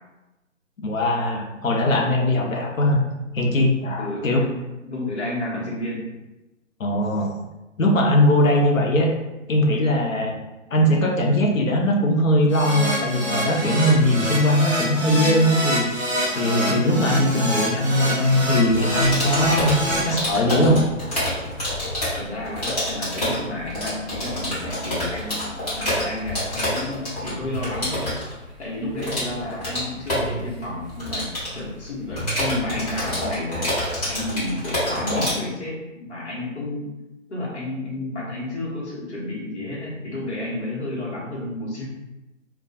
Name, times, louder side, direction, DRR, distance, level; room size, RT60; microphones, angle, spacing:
voice 1, 0.8-3.0 3.3-4.4 6.8-7.3 7.8-9.1 9.5-10.4 10.7-20.8, left 1 dB, 75° left, 0 dB, 0.7 m, -20 dB
voice 2, 4.0-6.1 22.2-28.1 28.6-33.7 34.1-36.9 37.3-41.8, left 1 dB, 55° left, -5 dB, 1.0 m, -31 dB
Keyboard (musical), 12.5-20.0, equal, 10° left, 0.6 m, -26 dB
sound 1, 18.7-35.3, left 1 dB, 30° left, 1.0 m, -28 dB
2.2 x 2.2 x 2.6 m, 1.0 s
figure-of-eight pair, 150°, 40 cm